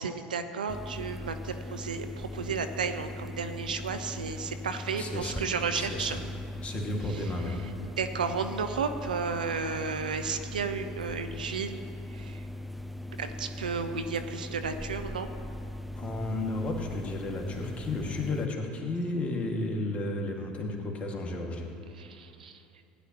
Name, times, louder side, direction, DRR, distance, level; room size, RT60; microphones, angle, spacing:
voice 1, 0.0-6.2 7.1-11.8 12.1-12.4 13.2-15.3 21.9-22.6, right 5 dB, 85° right, 8 dB, 0.6 m, -33 dB
sound 1, 0.7-18.5, left 1 dB, ahead, 0.3 m, -40 dB
voice 2, 5.0-5.4 5.7-6.2 6.6-7.6 16.0-21.7, left 2 dB, 30° left, 1 dB, 1.9 m, -33 dB
16.0 x 10.0 x 2.9 m, 2.7 s
figure-of-eight pair, 70°, 4 cm